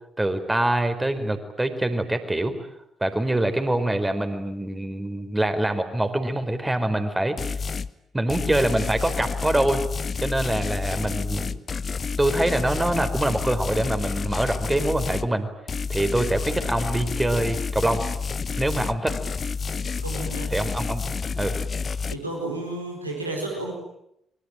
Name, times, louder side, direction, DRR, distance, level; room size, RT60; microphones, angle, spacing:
voice 1, 0.2-2.5 3.0-7.6 8.1-9.8 10.2-11.6 12.2-15.5 15.9-18.1 18.6-19.2 20.5-21.0 21.3-21.6, right 1 dB, 15° right, 9 dB, 4.6 m, -24 dB
sound 1, 7.4-7.9 8.3-15.3 15.7-22.2, left 5 dB, 40° left, 1.1 m, -29 dB
voice 2, 20.0-20.5 22.1-23.7, right 2 dB, 90° right, 0 dB, 4.6 m, -32 dB
26.0 x 23.5 x 9.1 m, 0.78 s
figure-of-eight pair, 40°, 0 cm